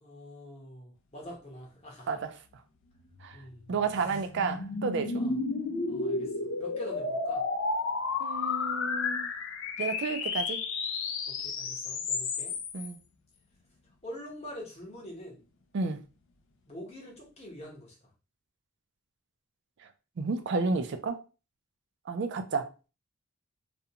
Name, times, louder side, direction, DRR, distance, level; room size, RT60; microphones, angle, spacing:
voice 1, 0.0-2.2 3.3-3.7 5.1-5.4 5.9-6.3 6.6-7.4 11.3-12.6 14.0-15.4 16.7-18.1, equal, 30° left, 0.9 m, -45 dB
sound 1, 3.2-12.9, left 4 dB, 60° left, 0.4 m, -32 dB
voice 2, 3.7-5.2 8.2-9.3 9.8-10.6 12.7-13.0 15.7-16.0 20.2-21.2 22.1-22.7, right 4 dB, 55° right, 0.4 m, -31 dB
2.4 x 2.2 x 2.8 m
head